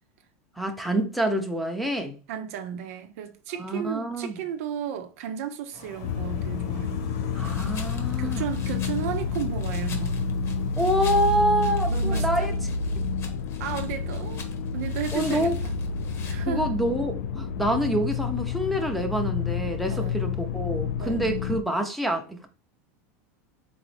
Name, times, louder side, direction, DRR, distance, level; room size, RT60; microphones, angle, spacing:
voice 1, 0.6-2.2 3.5-4.4 7.3-8.5 10.8-12.5 15.1-15.6 16.4-22.5, equal, ahead, 0.8 m, -27 dB
voice 2, 2.3-7.0 8.2-10.2 11.9-12.5 13.6-14.4 14.7-15.7 16.2-16.8 19.9-20.2 21.0-21.2, right 9 dB, 70° right, 0.6 m, -34 dB
sound 1, 5.7-11.1, left 1 dB, 55° left, 1.3 m, -45 dB
sound 2, 6.0-21.6, left 5 dB, 75° left, 0.4 m, -29 dB
sound 3, 7.4-16.3, left 5 dB, 35° left, 1.1 m, -45 dB
4.0 x 3.7 x 3.3 m
supercardioid pair, 135°, 8 cm